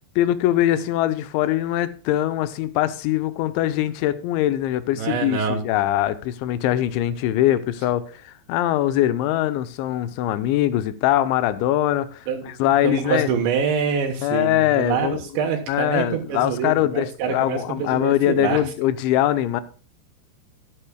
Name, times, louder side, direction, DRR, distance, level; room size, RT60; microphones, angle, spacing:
voice 1, 0.2-13.3 14.2-15.2 15.7-19.6, left 13 dB, 90° left, 3.1 m, -22 dB
voice 2, 5.0-5.6 12.3-18.6, right 6 dB, 80° right, 3.4 m, -25 dB
13.5 x 10.5 x 2.3 m
omnidirectional pair, 5.2 m